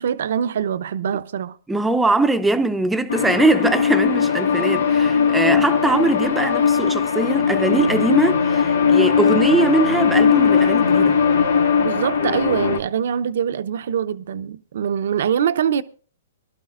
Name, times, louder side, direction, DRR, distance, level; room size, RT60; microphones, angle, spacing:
voice 1, 0.0-1.6 11.8-15.8, right 8 dB, 65° right, 0.7 m, -23 dB
voice 2, 1.7-11.2, right 2 dB, 5° right, 0.7 m, -21 dB
sound 1, 3.1-12.8, left 6 dB, 85° left, 1.9 m, -19 dB
23.5 x 12.0 x 2.5 m
hypercardioid pair, 140°, 0 cm